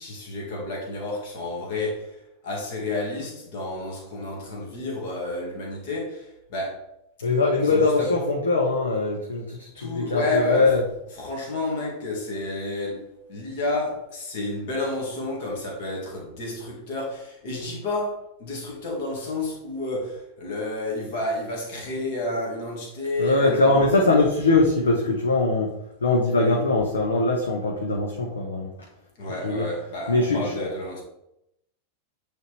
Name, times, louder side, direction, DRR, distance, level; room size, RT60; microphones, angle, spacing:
voice 1, 0.0-2.1 2.4-6.8 7.6-8.1 9.7-10.7 11.2-23.9 26.4-26.6 29.2-31.0, left 2 dB, 50° left, 2.0 m, -30 dB
voice 2, 7.2-10.8 23.2-25.7 26.0-28.9 29.4-29.7 30.1-30.7, left 3 dB, 70° left, 0.9 m, -22 dB
9.0 x 3.5 x 3.2 m
figure-of-eight pair, 90°, 0 cm